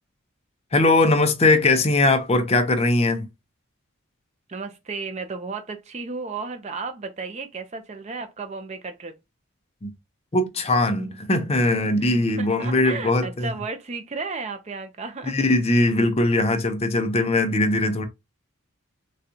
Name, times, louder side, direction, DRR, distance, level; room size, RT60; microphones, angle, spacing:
voice 1, 0.7-3.3 9.8-9.9 10.3-13.5 15.2-18.1, left 2 dB, 30° left, 0.5 m, -20 dB
voice 2, 4.5-9.1 12.0-15.4, right 4 dB, 30° right, 0.5 m, -34 dB
4.0 x 2.3 x 2.7 m
head